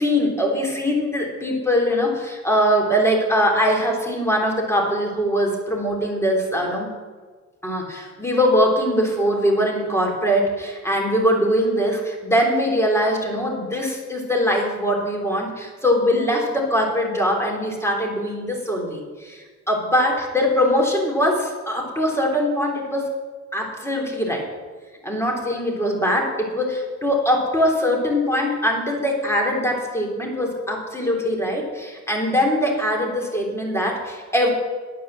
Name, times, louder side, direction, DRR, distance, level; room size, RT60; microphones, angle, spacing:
voice 1, 0.0-6.9 7.6-23.1 23.5-24.4 25.0-34.5, equal, 10° left, -1 dB, 3.2 m, -22 dB
9.3 x 8.3 x 7.4 m, 1.4 s
cardioid pair, 90°, 30 cm